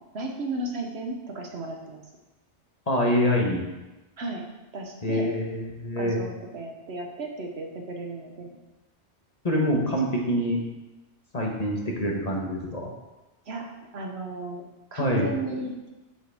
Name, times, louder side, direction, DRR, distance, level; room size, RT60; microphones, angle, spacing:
voice 1, 0.1-2.0 4.2-4.4 4.7-5.3 6.0-8.6 13.5-13.6 13.9-15.9, right 2 dB, 65° right, 2 dB, 1.3 m, -34 dB
voice 2, 2.9-3.7 5.0-6.2 9.4-10.6 11.3-12.9 15.0-15.3, equal, 35° left, -1 dB, 1.3 m, -25 dB
7.6 x 7.6 x 3.5 m, 1.1 s
omnidirectional pair, 1.2 m